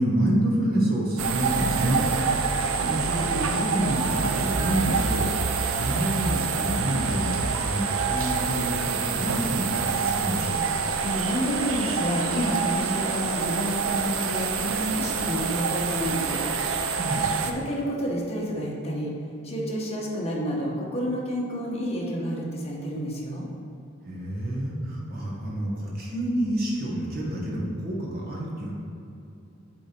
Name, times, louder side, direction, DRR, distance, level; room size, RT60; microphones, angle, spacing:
voice 1, 0.0-2.1 2.8-5.3 5.8-10.7 17.0-17.3 24.1-28.7, right 1 dB, 50° right, -4 dB, 1.4 m, -28 dB
sound 1, 1.2-17.5, right 5 dB, 75° right, 0.5 m, -27 dB
voice 2, 11.0-16.4 17.4-19.1 19.4-23.5, equal, 30° left, -3 dB, 1.2 m, -29 dB
8.3 x 3.7 x 4.5 m, 2.7 s
head